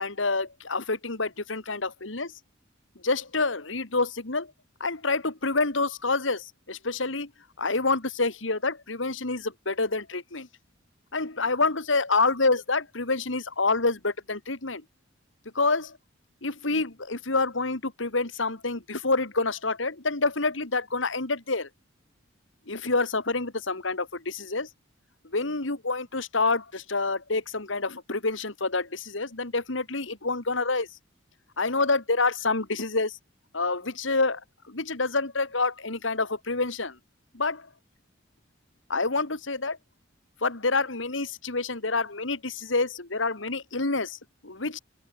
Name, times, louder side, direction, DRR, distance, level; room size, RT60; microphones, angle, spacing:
voice 1, 0.0-2.3 3.0-4.5 4.8-7.3 7.6-10.5 11.1-14.8 15.5-16.0 16.4-21.7 22.7-24.7 25.3-30.9 31.6-33.2 33.5-34.4 34.7-37.0 37.3-37.7 38.9-39.8 40.4-44.8, left 3 dB, 70° left, 2.5 m, -27 dB
open air
head